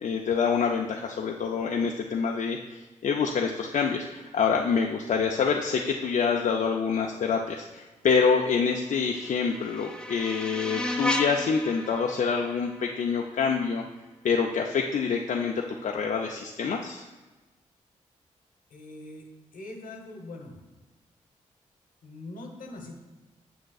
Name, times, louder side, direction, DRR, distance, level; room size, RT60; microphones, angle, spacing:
voice 1, 0.0-13.8 14.2-17.1, left 5 dB, 65° left, 1 dB, 0.5 m, -26 dB
sound 1, 8.8-13.8, left 1 dB, 5° left, 0.7 m, -35 dB
voice 2, 18.7-19.2 19.5-20.6 22.0-23.0, left 2 dB, 80° left, 2 dB, 1.0 m, -42 dB
6.7 x 6.4 x 2.3 m, 1.2 s
supercardioid pair, 45°, 14 cm